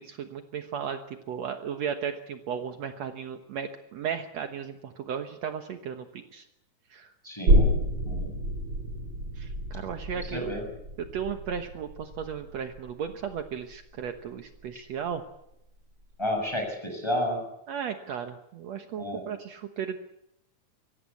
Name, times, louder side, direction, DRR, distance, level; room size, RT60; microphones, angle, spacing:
voice 1, 0.0-6.5 6.9-7.1 9.4-10.5 11.0-15.2 17.7-20.0, right 7 dB, 65° right, 6 dB, 2.3 m, -35 dB
voice 2, 7.2-7.7 8.1-8.3 10.3-10.6 16.2-17.4 19.0-19.2, left 1 dB, 10° left, 2 dB, 7.2 m, -31 dB
sound 1, 7.5-14.7 15.1-15.2, equal, 45° right, 6.3 m, -28 dB
24.0 x 18.0 x 8.5 m, 0.82 s
omnidirectional pair, 3.4 m